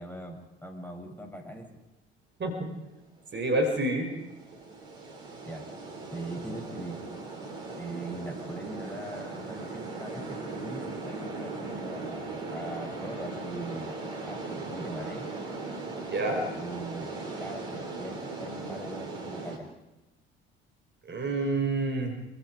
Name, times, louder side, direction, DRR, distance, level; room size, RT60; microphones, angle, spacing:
voice 1, 0.0-1.7 5.4-5.7 6.1-7.0 7.8-15.3 16.6-17.1 17.4-19.7, right 1 dB, 5° left, 2 dB, 7.9 m, -41 dB
voice 2, 3.3-4.1 16.1-16.4 21.1-22.1, right 2 dB, 35° right, 4 dB, 5.9 m, -28 dB
sound 1, 3.3-19.6, right 3 dB, 75° right, 4.5 m, -38 dB
27.5 x 25.5 x 5.0 m, 1.0 s
figure-of-eight pair, 55°, 31 cm